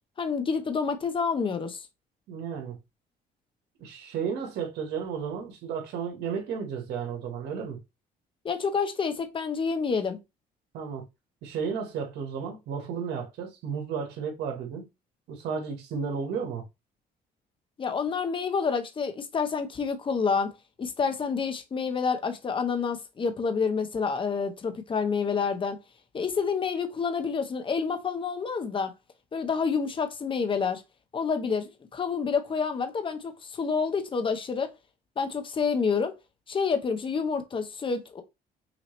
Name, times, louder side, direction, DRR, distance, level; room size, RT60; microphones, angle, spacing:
voice 1, 0.2-1.9 8.4-10.2 17.8-20.5 20.8-25.8 26.1-28.9 29.3-30.8 31.1-34.7 35.2-36.1 36.5-38.2, left 5 dB, 30° left, 1.0 m, -28 dB
voice 2, 2.3-2.8 3.8-7.8 10.7-11.0 11.4-14.9 15.3-16.6, right 6 dB, 80° right, 1.6 m, -33 dB
5.9 x 2.8 x 3.2 m
cardioid pair, 110°, 17 cm